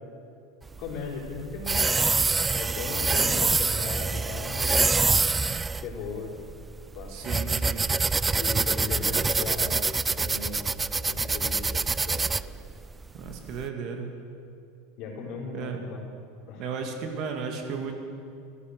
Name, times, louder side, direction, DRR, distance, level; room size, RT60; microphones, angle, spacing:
sound 1, 0.7-13.6, right 4 dB, 15° right, 0.3 m, -26 dB
voice 1, 0.8-1.8 2.5-5.1 5.8-6.3 6.9-7.1 8.4-9.8 10.2-10.7 11.0-12.2 15.0-16.0 16.5-16.6, left 4 dB, 55° left, -2 dB, 4.1 m, -37 dB
voice 2, 7.1-7.9 9.0-9.3 13.1-14.1 15.5-15.8 16.6-17.9, right 5 dB, 55° right, 4 dB, 2.0 m, -35 dB
13.5 x 12.5 x 6.5 m, 2.4 s
hypercardioid pair, 100°, 0 cm